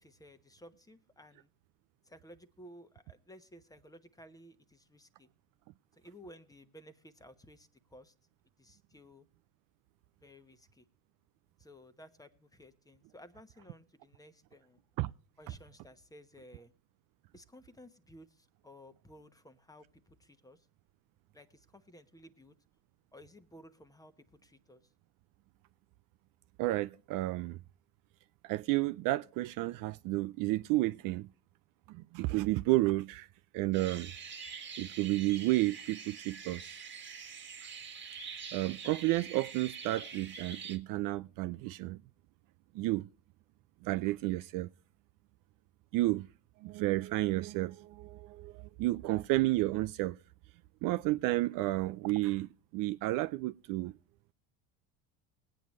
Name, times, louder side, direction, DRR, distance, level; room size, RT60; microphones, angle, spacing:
voice 1, 0.0-1.5 2.1-5.3 6.0-8.1 8.6-9.3 10.2-10.9 11.6-14.8 15.4-16.7 17.3-20.7 21.3-22.5 23.1-24.8, equal, 10° left, 1.0 m, -56 dB
voice 2, 26.6-27.6 28.4-31.3 31.9-33.3 33.5-34.1 34.8-36.8 38.5-42.0 42.7-43.1 43.8-44.7 45.9-46.3 46.6-50.2 50.8-53.9, right 18 dB, 55° right, 0.5 m, -31 dB
sound 1, 33.7-40.8, right 6 dB, 25° right, 1.8 m, -45 dB
20.0 x 9.0 x 3.1 m
supercardioid pair, 100°, 41 cm